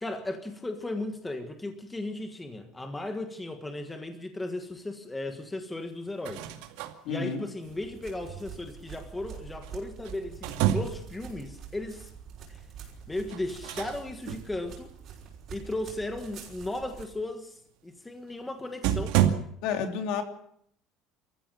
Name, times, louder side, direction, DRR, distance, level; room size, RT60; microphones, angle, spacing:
voice 1, 0.0-6.5 7.1-12.1 12.5-12.6 13.1-14.9 15.5-19.2, left 2 dB, 10° left, 6 dB, 1.5 m, -36 dB
sound 1, 6.1-7.0 9.6-11.2 13.3-14.0 14.3-14.5 18.3-18.4 18.8-19.4, right 12 dB, 90° right, 2.3 m, -28 dB
voice 2, 7.0-7.4 19.6-20.2, left 6 dB, 60° left, 5 dB, 3.0 m, -30 dB
sound 2, 7.6-17.1, right 7 dB, 35° right, 5.5 m, -46 dB
25.5 x 14.5 x 7.7 m, 0.69 s
cardioid pair, 180°, 0 cm